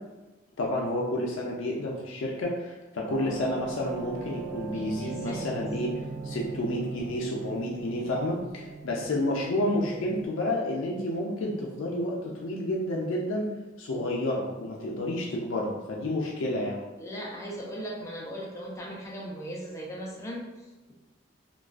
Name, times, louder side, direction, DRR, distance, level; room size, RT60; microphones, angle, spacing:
voice 1, 0.6-5.9 6.2-13.5 13.8-16.8, left 1 dB, 85° left, -2 dB, 0.4 m, -30 dB
sound 1, 3.1-10.3, right 4 dB, 60° right, 0.3 m, -39 dB
voice 2, 4.6-5.6 17.0-20.9, equal, 15° left, -3 dB, 0.4 m, -38 dB
2.4 x 2.2 x 2.3 m, 1.1 s
head